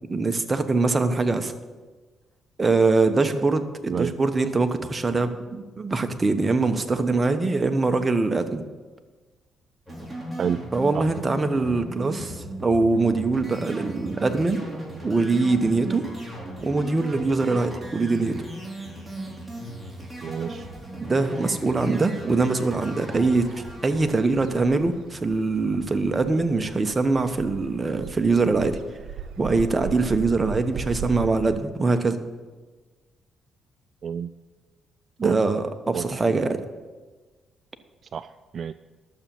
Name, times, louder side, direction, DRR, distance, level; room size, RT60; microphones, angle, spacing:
voice 1, 0.1-1.5 2.6-8.6 10.7-14.7 15.0-16.0 16.6-18.4 21.0-28.8 29.4-32.2 35.2-36.6, right 3 dB, 25° right, 7 dB, 1.1 m, -23 dB
sound 1, 9.9-25.2, right 1 dB, 5° right, 4.1 m, -37 dB
voice 2, 20.2-20.7 34.0-34.3 35.2-35.4 35.9-36.0 38.1-38.7, right 7 dB, 50° right, 13 dB, 0.3 m, -28 dB
sound 2, 23.1-31.6, right 6 dB, 75° right, 0.8 m, -38 dB
12.0 x 7.2 x 7.1 m, 1.3 s
cardioid pair, 90°, 0 cm